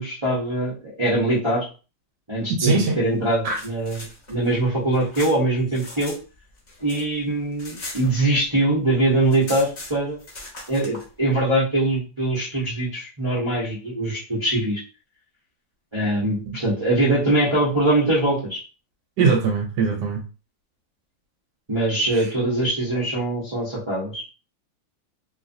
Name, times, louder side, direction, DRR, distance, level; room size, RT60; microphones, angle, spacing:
voice 1, 0.0-1.6 2.3-6.1 6.8-10.2 10.7-14.8 15.9-18.6 21.7-24.3, right 1 dB, 30° right, -9 dB, 0.5 m, -22 dB
voice 2, 2.6-3.0 3.4-3.6 16.5-16.6 19.2-20.2 22.1-22.3, right 4 dB, 75° right, 3 dB, 1.1 m, -21 dB
sound 1, 3.3-6.2 6.5-8.6 8.9-9.0 9.2-11.1, left 2 dB, 45° left, 0.9 m, -39 dB
3.1 x 2.4 x 2.6 m, 0.34 s
omnidirectional pair, 2.1 m